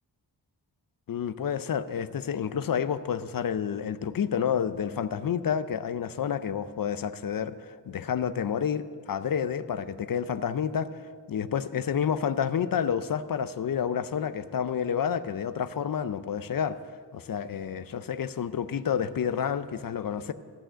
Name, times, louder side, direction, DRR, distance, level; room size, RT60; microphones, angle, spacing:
voice 1, 1.1-11.0 11.3-16.8 17.1-20.3, left 8 dB, 55° left, 0.5 m, -29 dB
14.5 x 6.3 x 7.9 m
wide cardioid pair, 145°, 42 cm